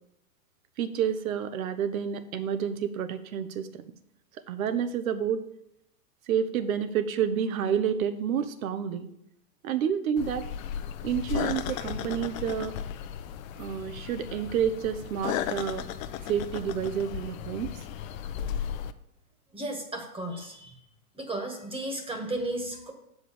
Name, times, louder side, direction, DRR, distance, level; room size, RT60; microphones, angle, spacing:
voice 1, 0.8-3.8 4.5-5.4 6.3-9.1 9.6-10.4 11.0-12.7 13.6-15.8 16.3-17.7, right 8 dB, 65° right, 11 dB, 1.0 m, -29 dB
sound 1, 10.2-18.9, left 9 dB, 60° left, 0.7 m, -35 dB
voice 2, 19.5-20.8 21.1-22.9, right 1 dB, 10° right, 3 dB, 1.5 m, -34 dB
7.6 x 4.9 x 6.9 m, 0.79 s
hypercardioid pair, 110°, 46 cm